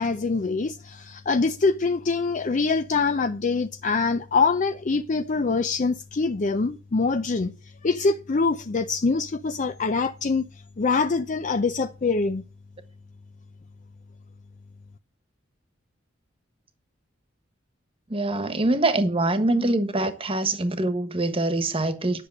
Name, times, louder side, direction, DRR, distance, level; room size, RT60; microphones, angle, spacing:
voice 1, 0.0-7.5 7.8-10.5 10.8-12.4, left 4 dB, 40° left, 0.5 m, -24 dB
voice 2, 18.1-22.3, right 2 dB, 30° right, 1.3 m, -24 dB
10.5 x 6.6 x 6.5 m
head